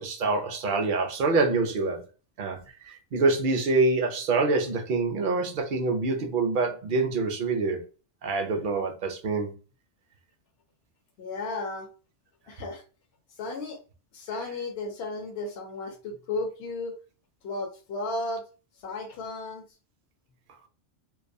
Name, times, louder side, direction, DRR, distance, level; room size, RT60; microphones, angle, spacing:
voice 1, 0.0-2.0 2.4-2.6 2.9-7.8 8.2-9.5, right 3 dB, 60° right, 0.6 m, -26 dB
voice 2, 11.2-11.9 12.5-12.8 13.4-13.8 14.1-17.0 17.4-18.4 18.8-19.6, left 2 dB, 65° left, 0.8 m, -34 dB
2.5 x 2.3 x 2.5 m
omnidirectional pair, 1.2 m